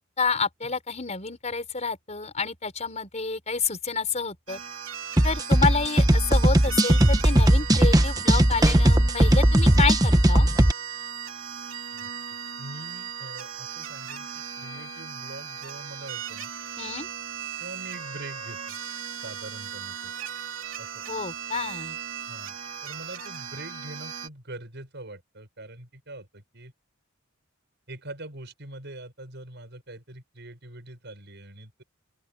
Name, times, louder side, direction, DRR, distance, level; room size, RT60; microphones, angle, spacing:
voice 1, 0.2-4.6 5.2-10.5 16.8-17.1 21.1-22.0, left 4 dB, 35° left, 5.5 m, -29 dB
sound 1, 4.5-24.3, right 7 dB, 80° right, 2.9 m, -37 dB
sound 2, 5.2-10.7, right 1 dB, 20° right, 1.1 m, -18 dB
voice 2, 12.6-16.5 17.6-18.8 19.2-20.1 20.8-21.0 22.3-22.6 22.8-26.7 27.9-31.8, right 1 dB, 60° right, 7.4 m, -43 dB
open air
head